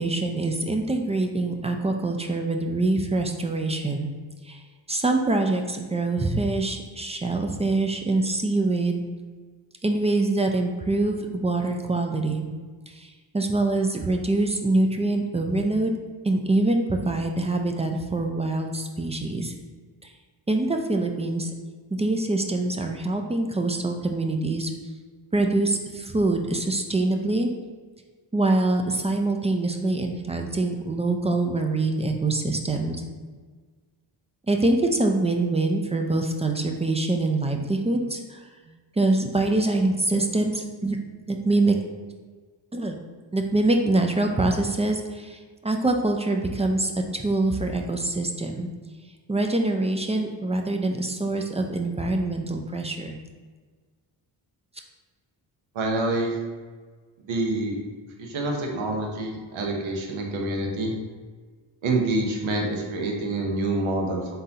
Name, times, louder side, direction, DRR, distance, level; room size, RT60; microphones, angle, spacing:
voice 1, 0.0-4.1 4.4-4.6 4.9-9.0 9.8-12.5 12.9-15.9 16.2-19.5 20.0-20.1 20.5-21.5 21.9-24.7 25.3-27.5 28.3-33.0 34.5-38.4 39.0-41.0 41.3-41.8 42.7-43.0 43.3-48.7 49.3-53.2, right 2 dB, 15° right, 3 dB, 0.3 m, -24 dB
voice 2, 55.7-56.3 57.3-57.8 58.2-60.9 61.8-64.3, right 2 dB, 85° right, 1 dB, 0.9 m, -27 dB
4.0 x 3.9 x 2.7 m, 1.4 s
cardioid pair, 75°, 47 cm